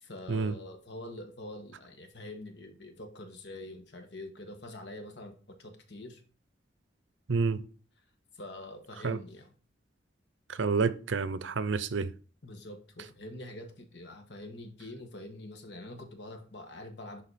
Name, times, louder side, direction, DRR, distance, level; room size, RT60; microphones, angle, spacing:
voice 1, 0.0-6.2 8.3-9.5 12.4-17.2, left 1 dB, 65° left, 1.5 m, -45 dB
voice 2, 7.3-7.6 9.0-9.2 10.5-12.1, right 4 dB, 85° right, 0.6 m, -29 dB
11.0 x 4.2 x 4.2 m
head